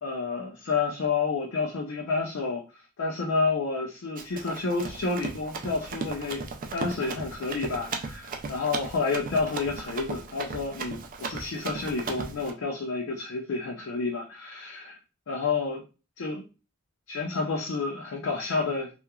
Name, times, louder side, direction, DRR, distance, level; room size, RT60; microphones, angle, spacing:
voice 1, 0.0-2.6 3.0-6.4 6.7-15.0 15.3-15.8 16.2-16.4 17.1-18.9, left 4 dB, 70° left, 0 dB, 0.5 m, -30 dB
Run, 4.2-12.5, right 4 dB, 45° right, 0.4 m, -36 dB
2.9 x 2.3 x 2.3 m, 0.32 s
head